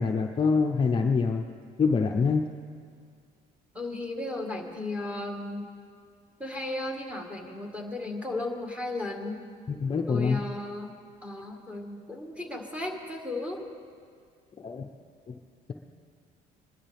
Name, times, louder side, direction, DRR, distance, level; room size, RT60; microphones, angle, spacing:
voice 1, 0.0-1.5 1.8-2.4 9.7-10.4 14.6-14.9 15.3-15.4, left 5 dB, 30° left, 2 dB, 0.7 m, -25 dB
voice 2, 3.7-5.7 6.4-9.4 10.1-10.9 11.2-13.6, left 2 dB, 5° right, 1 dB, 1.8 m, -35 dB
22.5 x 12.0 x 3.5 m, 2.1 s
cardioid pair, 110°, 17 cm